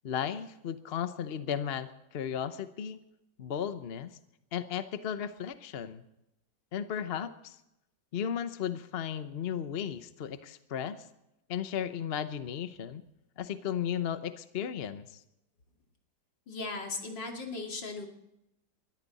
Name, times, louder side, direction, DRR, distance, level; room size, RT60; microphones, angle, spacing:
voice 1, 0.0-3.0 3.4-4.2 4.5-6.0 6.7-7.6 8.1-11.0 11.5-13.0 13.4-15.2, left 8 dB, 50° left, 11 dB, 0.8 m, -35 dB
voice 2, 16.5-18.1, left 3 dB, 75° left, 2 dB, 3.1 m, -37 dB
21.0 x 13.5 x 4.1 m, 0.86 s
omnidirectional pair, 2.0 m